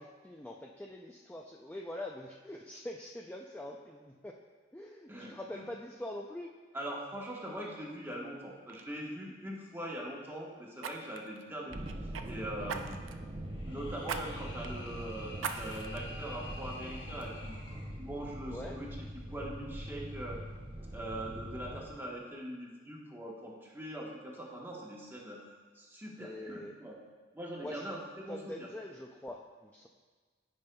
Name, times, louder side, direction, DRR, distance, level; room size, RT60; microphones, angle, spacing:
voice 1, 0.0-4.4 4.7-6.5 18.5-18.8 26.2-26.7 27.6-28.0 28.3-29.9, left 1 dB, 10° left, -1 dB, 0.3 m, -44 dB
voice 2, 5.1-5.6 6.7-11.8 12.3-13.0 13.6-17.6 18.0-18.9 19.1-20.4 20.9-27.0 27.3-28.7, right 1 dB, 10° right, -3 dB, 1.1 m, -42 dB
Fire, 8.1-8.3 8.7-8.9 10.8-12.3 12.7-13.2 14.0-14.2 14.6-14.7 15.4-16.0 16.5-16.6, right 6 dB, 85° right, 0.5 m, -40 dB
sound 1, 11.7-21.9, right 1 dB, 25° right, 0.6 m, -43 dB
sound 2, 13.4-17.9, left 2 dB, 65° left, 1.1 m, -50 dB
15.0 x 5.2 x 2.3 m, 1.4 s
head